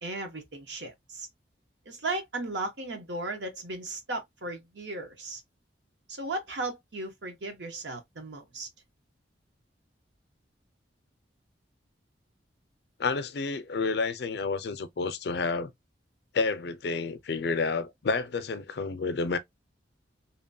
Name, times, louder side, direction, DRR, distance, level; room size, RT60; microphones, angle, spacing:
voice 1, 0.0-1.3 1.9-5.4 6.1-8.7, right 2 dB, 70° right, 0.9 m, -36 dB
voice 2, 13.0-15.7 16.3-19.4, left 4 dB, 60° left, 0.4 m, -30 dB
2.9 x 2.1 x 2.5 m
head